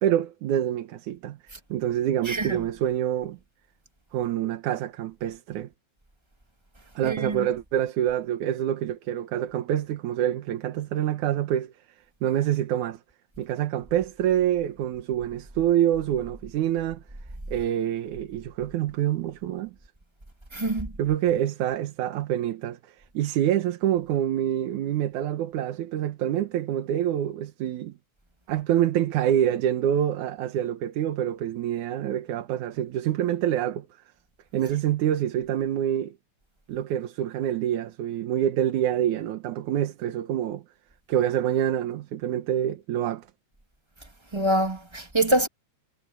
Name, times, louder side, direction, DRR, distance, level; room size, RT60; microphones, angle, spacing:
voice 1, 0.0-3.4 4.1-5.7 7.0-11.7 12.2-13.0 13.4-17.0 17.5-19.7 21.0-22.8 23.1-28.0 28.5-33.9 34.5-36.2 36.7-40.6 41.1-43.3, right 11 dB, 85° right, 2.7 m, -26 dB
voice 2, 2.3-2.6 7.0-7.5 20.5-20.9 44.3-45.5, right 1 dB, 10° right, 1.6 m, -25 dB
omnidirectional pair, 3.4 m